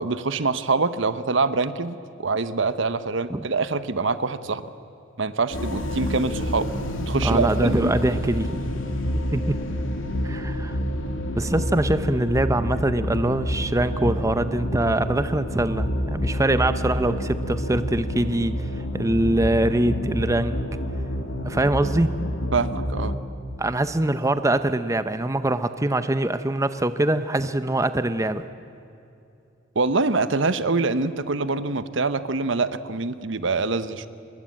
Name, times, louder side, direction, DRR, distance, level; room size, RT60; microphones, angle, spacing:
voice 1, 0.0-2.0 2.2-4.6 5.2-6.7 7.0-8.2 22.5-23.2 29.7-34.1, right 3 dB, 65° right, 13 dB, 1.0 m, -25 dB
sound 1, 5.5-23.2, equal, 80° left, 2.7 m, -28 dB
voice 2, 7.2-8.5 9.3-9.6 10.2-10.8 11.4-20.6 21.4-22.1 23.6-28.4, right 1 dB, 15° right, 11 dB, 0.7 m, -23 dB
25.5 x 22.0 x 8.6 m, 2.7 s
head